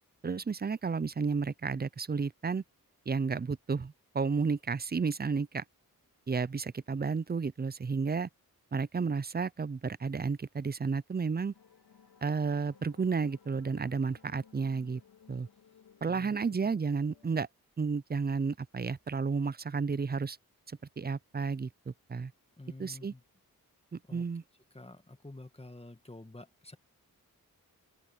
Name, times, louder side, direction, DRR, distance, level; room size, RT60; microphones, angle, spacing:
voice 1, 0.2-2.6 3.1-5.6 6.3-8.3 8.7-11.5 12.2-15.0 15.3-15.5 16.0-17.5 17.8-20.4 21.0-22.3 22.8-23.1 23.9-24.4, right 5 dB, 25° right, 0.6 m, -32 dB
sound 1, 11.5-17.4, left 7 dB, 90° left, 3.1 m, -60 dB
voice 2, 16.0-16.6 22.6-23.2 24.1-24.2 24.7-26.8, left 2 dB, 15° left, 2.0 m, -49 dB
open air
cardioid pair, 55°, 37 cm